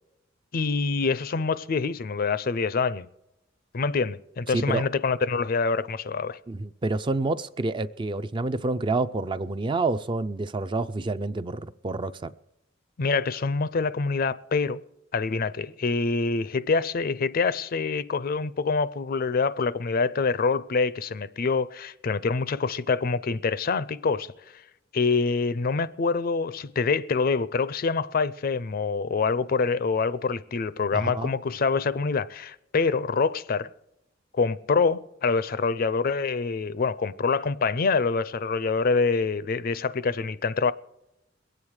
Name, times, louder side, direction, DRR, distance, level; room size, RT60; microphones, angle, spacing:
voice 1, 0.5-3.1 3.7-6.4 13.0-14.8 15.1-24.3 24.9-33.7 34.3-40.7, left 4 dB, 50° left, 0.5 m, -26 dB
voice 2, 4.5-4.9 6.5-12.3 30.9-31.3, right 3 dB, 25° right, 0.4 m, -28 dB
22.0 x 8.9 x 4.8 m
head